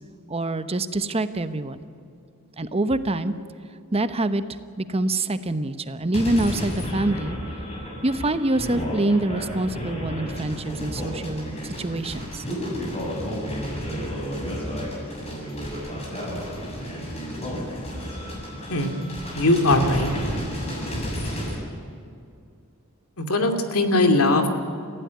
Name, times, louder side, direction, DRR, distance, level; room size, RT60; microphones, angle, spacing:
voice 1, 0.3-1.8 2.6-3.3 3.9-4.4 4.8-7.4 8.0-12.4, right 2 dB, 30° right, 10 dB, 0.9 m, -25 dB
sound 1, 6.1-21.6, equal, 30° left, 7.3 m, -31 dB
voice 2, 19.3-20.1 23.2-24.5, left 2 dB, 90° left, 5 dB, 2.6 m, -20 dB
30.0 x 15.5 x 9.5 m, 2.4 s
head